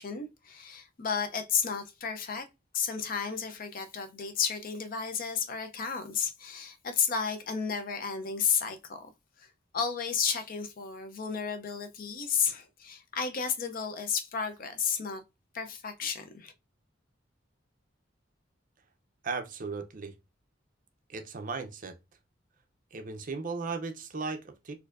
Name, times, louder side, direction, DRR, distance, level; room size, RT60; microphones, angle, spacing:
voice 1, 0.0-2.5 2.7-9.1 9.4-9.5 9.7-15.2 15.5-16.5, left 6 dB, 50° left, 0.5 m, -32 dB
voice 2, 19.2-20.2 21.1-22.0 22.9-24.7, right 4 dB, 45° right, 0.6 m, -36 dB
4.3 x 2.6 x 2.4 m
head